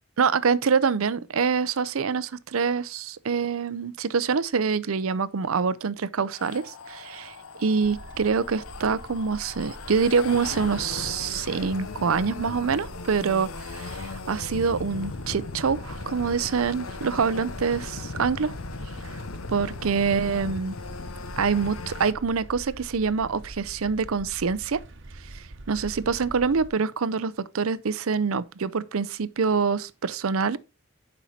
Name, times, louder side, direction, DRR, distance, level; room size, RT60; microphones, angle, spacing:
voice 1, 0.2-18.5 19.0-19.2 19.5-20.8 21.4-24.8 25.3-30.6, right 5 dB, 75° right, 0.6 m, -25 dB
sound 1, 6.3-22.1, left 4 dB, 80° left, 0.8 m, -38 dB
sound 2, 7.8-26.7, right 2 dB, 60° right, 1.0 m, -44 dB
10.0 x 5.5 x 4.3 m
head